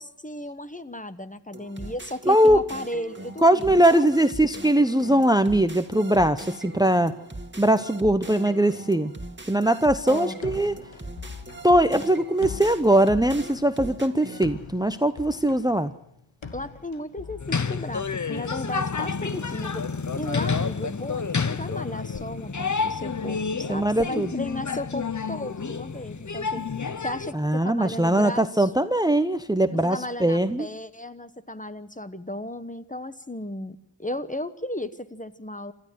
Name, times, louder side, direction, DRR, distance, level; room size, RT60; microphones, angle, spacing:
voice 1, 0.0-4.1 10.1-10.4 16.5-19.8 20.2-26.6 27.0-28.7 29.7-35.7, left 1 dB, 15° left, 12 dB, 1.1 m, -35 dB
sound 1, 1.5-14.5, right 2 dB, 25° right, 2.1 m, -40 dB
voice 2, 2.3-2.6 3.4-7.1 7.6-9.2 9.5-10.7 11.6-15.9 23.7-24.3 27.3-30.7, right 1 dB, 10° right, 12 dB, 0.8 m, -21 dB
sound 2, 10.4-18.3, left 5 dB, 90° left, 1.7 m, -42 dB
sound 3, 17.4-27.3, left 5 dB, 40° left, 0.9 m, -29 dB
26.5 x 13.0 x 7.7 m, 0.74 s
wide cardioid pair, 55°, 45 cm